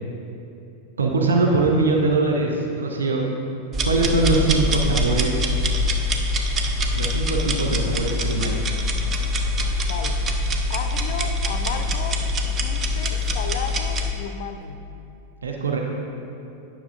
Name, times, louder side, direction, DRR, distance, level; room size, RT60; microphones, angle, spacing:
voice 1, 1.0-3.2 3.8-5.5 6.9-8.6 15.4-15.8, right 3 dB, 70° right, 0 dB, 0.5 m, -22 dB
sound 1, 3.7-14.1, left 1 dB, 25° right, 0.6 m, -24 dB
voice 2, 9.8-10.3 10.7-14.8, left 6 dB, 55° left, 8 dB, 0.4 m, -34 dB
9.4 x 5.9 x 2.5 m, 2.8 s
figure-of-eight pair, 90°, 0 cm